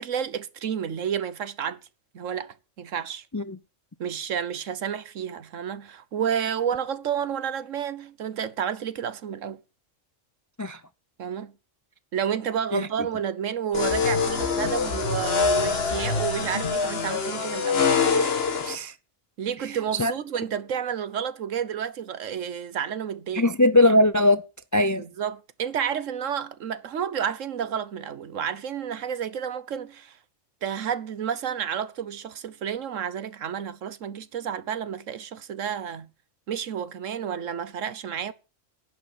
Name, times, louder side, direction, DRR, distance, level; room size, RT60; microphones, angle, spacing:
voice 1, 0.0-1.8 2.1-3.2 4.0-9.6 11.2-11.5 12.1-17.9 19.4-23.5 25.0-30.2 30.6-36.1 36.5-38.3, right 8 dB, 75° right, 1.3 m, -30 dB
sound 1, 13.7-18.8, left 5 dB, 50° left, 1.6 m, -24 dB
voice 2, 18.6-19.0 19.6-20.1 23.3-24.4 24.7-25.0, left 1 dB, 30° left, 0.3 m, -21 dB
11.0 x 8.5 x 8.4 m
omnidirectional pair, 1.3 m